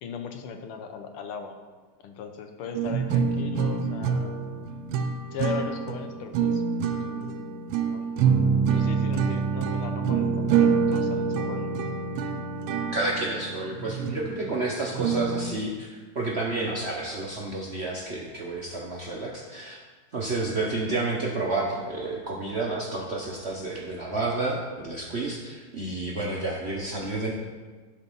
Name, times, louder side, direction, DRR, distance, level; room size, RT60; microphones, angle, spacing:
voice 1, 0.0-1.6 2.0-4.4 5.3-6.6 7.0-7.5 7.8-8.1 8.7-11.7, left 6 dB, 90° left, 6 dB, 1.7 m, -38 dB
sound 1, 2.7-15.5, right 6 dB, 80° right, 1.5 m, -26 dB
voice 2, 12.9-19.8 20.1-27.3, right 2 dB, 65° right, -3 dB, 0.6 m, -30 dB
11.5 x 4.0 x 5.4 m, 1.4 s
omnidirectional pair, 2.4 m